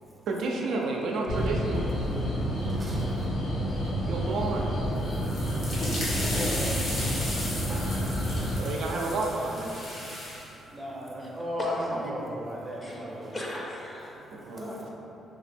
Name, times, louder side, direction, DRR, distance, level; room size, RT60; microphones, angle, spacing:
voice 1, 0.3-1.9 4.1-4.7 8.6-9.7 14.3-14.8, right 3 dB, 75° right, -1 dB, 0.3 m, -30 dB
sound 1, 1.3-8.6, equal, 80° left, 0.7 m, -29 dB
voice 2, 2.2-4.1 5.0-8.7 9.8-13.4 14.1-14.8, equal, 25° right, -2 dB, 0.5 m, -39 dB
sound 2, 5.1-10.5, left 1 dB, 55° left, 0.9 m, -36 dB
voice 3, 5.8-6.5 11.6-12.1 12.8-14.2 14.6-14.9, left 1 dB, 30° left, -2 dB, 0.5 m, -37 dB
3.3 x 2.0 x 3.3 m, 3.0 s
cardioid pair, 90°, 0 cm